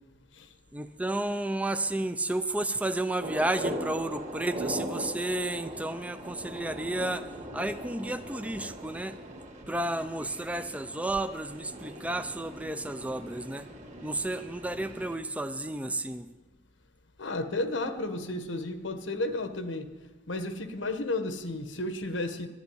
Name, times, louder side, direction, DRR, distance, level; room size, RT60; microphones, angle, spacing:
voice 1, 0.7-7.3 7.5-9.2 9.7-13.7 14.0-16.3, right 1 dB, 5° right, 10 dB, 0.5 m, -32 dB
sound 1, 3.2-15.2, right 1 dB, 40° right, 2.2 m, -40 dB
voice 2, 17.2-19.9 20.3-22.5, left 2 dB, 85° left, 9 dB, 1.3 m, -32 dB
11.5 x 11.0 x 9.6 m, 1.2 s
head